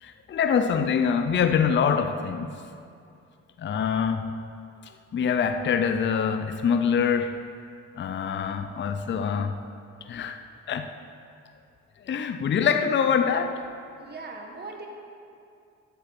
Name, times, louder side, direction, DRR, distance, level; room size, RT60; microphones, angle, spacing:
voice 1, 0.0-2.5 3.6-4.3 5.1-7.4 8.0-9.6 10.1-10.4 10.7-10.9 12.1-13.7, left 6 dB, 40° left, 0.6 m, -25 dB
voice 2, 3.7-4.1 9.1-9.4 13.9-14.9, right 3 dB, 35° right, 1.4 m, -42 dB
8.8 x 7.5 x 8.2 m
cardioid pair, 90°, 30 cm